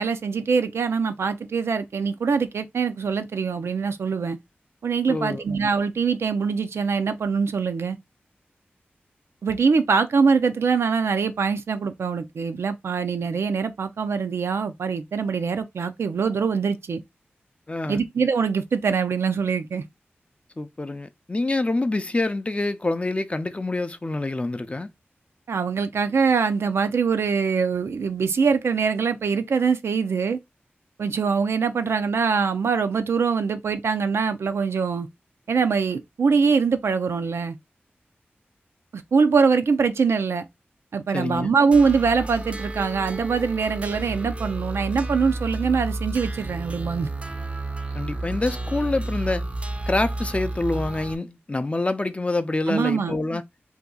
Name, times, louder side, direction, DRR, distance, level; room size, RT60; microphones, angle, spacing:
voice 1, 0.0-4.4 4.8-8.0 9.4-17.0 17.9-19.8 25.5-30.4 31.0-35.1 35.5-37.6 38.9-40.5 40.9-47.1 52.7-53.2, right 5 dB, 85° right, 0.4 m, -23 dB
voice 2, 5.1-5.4 17.7-18.0 20.6-24.9 41.1-41.6 47.9-49.4 49.9-53.4, left 2 dB, 30° left, 0.4 m, -26 dB
sound 1, 41.7-51.2, right 2 dB, 30° right, 0.5 m, -31 dB
2.7 x 2.3 x 3.6 m
cardioid pair, 45°, 4 cm